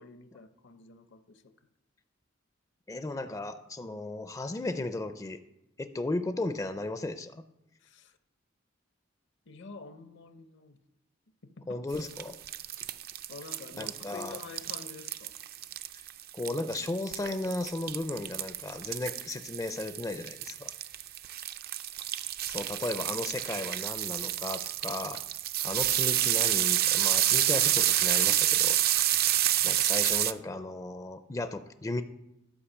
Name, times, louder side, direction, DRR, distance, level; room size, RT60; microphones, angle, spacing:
voice 1, 0.0-1.5 7.8-8.2 9.5-10.8 11.4-11.8 13.3-15.3 22.5-22.7, left 4 dB, 65° left, 11 dB, 0.7 m, -48 dB
voice 2, 2.9-5.4 5.8-7.4 11.7-12.4 13.8-14.4 15.9-16.0 16.3-20.7 22.5-25.2 25.6-28.8 29.6-32.0, left 2 dB, 15° left, 10 dB, 0.4 m, -35 dB
sound 1, 11.9-30.3, right 13 dB, 50° right, 0.4 m, -29 dB
11.5 x 4.9 x 7.0 m, 0.92 s
head